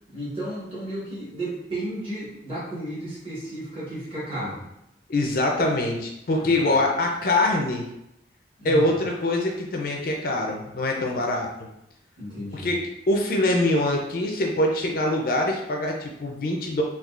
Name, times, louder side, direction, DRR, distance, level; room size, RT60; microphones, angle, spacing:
voice 1, 0.1-4.7 6.4-6.8 8.6-9.0 12.2-12.8, right 1 dB, 30° right, -8 dB, 1.3 m, -33 dB
voice 2, 5.1-7.9 8.6-11.5 12.5-12.8 13.1-16.8, left 1 dB, 50° left, 1 dB, 0.4 m, -24 dB
3.7 x 2.3 x 2.3 m, 0.84 s
head